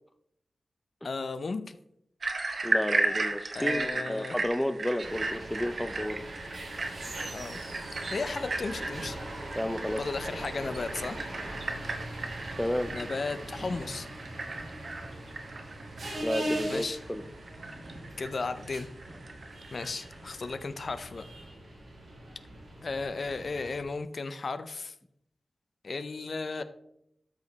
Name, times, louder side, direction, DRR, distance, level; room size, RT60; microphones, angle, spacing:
voice 1, 1.0-1.8 3.5-4.4 7.3-7.6 8.1-9.2 10.0-11.2 12.9-14.1 16.7-17.0 18.2-18.9 19.7-21.3 22.8-24.9 25.8-26.6, left 3 dB, 55° left, 11 dB, 0.6 m, -35 dB
sound 1, 2.2-20.5, right 3 dB, 55° right, 1.1 m, -35 dB
voice 2, 2.6-6.2 9.6-10.0 12.6-12.9 16.2-17.2, left 1 dB, 10° left, 10 dB, 0.5 m, -31 dB
sound 2, 5.0-23.8, right 1 dB, 85° right, 3.8 m, -41 dB
13.0 x 5.1 x 4.1 m, 0.77 s
wide cardioid pair, 135°, 0 cm